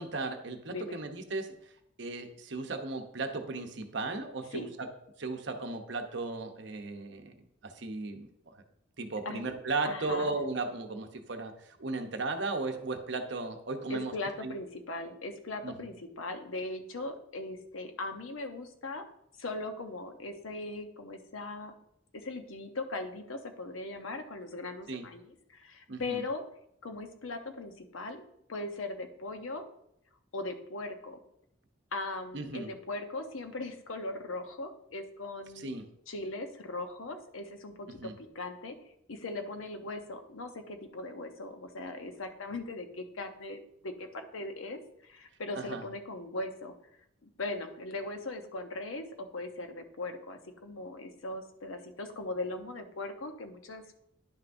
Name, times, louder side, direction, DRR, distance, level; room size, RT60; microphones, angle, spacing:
voice 1, 0.0-1.7 2.0-4.9 5.2-7.4 7.6-8.5 9.0-14.1 14.4-14.5 15.6-15.9 24.9-25.0 25.9-26.2 32.3-32.7 35.6-35.8 37.9-38.1 45.5-45.8, right 3 dB, 60° right, 5 dB, 0.8 m, -36 dB
voice 2, 9.8-10.3 13.9-19.0 19.4-21.7 22.1-26.4 26.8-28.2 28.5-29.6 30.3-31.2 31.9-35.8 36.1-38.8 39.1-46.7 47.2-53.9, left 2 dB, 80° left, 7 dB, 0.8 m, -39 dB
10.5 x 5.8 x 2.6 m, 0.76 s
head